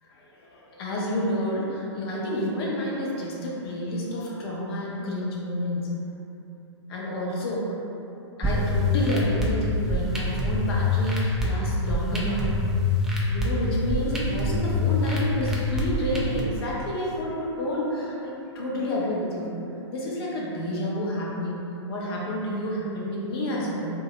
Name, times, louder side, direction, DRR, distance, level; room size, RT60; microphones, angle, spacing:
voice 1, 0.0-5.9 6.9-7.7 8.4-12.5 13.3-19.5 19.9-23.9, left 1 dB, 55° left, -4 dB, 0.7 m, -29 dB
sound 1, 8.4-16.4, left 2 dB, 5° right, 0.3 m, -25 dB
2.7 x 2.2 x 2.9 m, 2.9 s
hypercardioid pair, 115°, 15 cm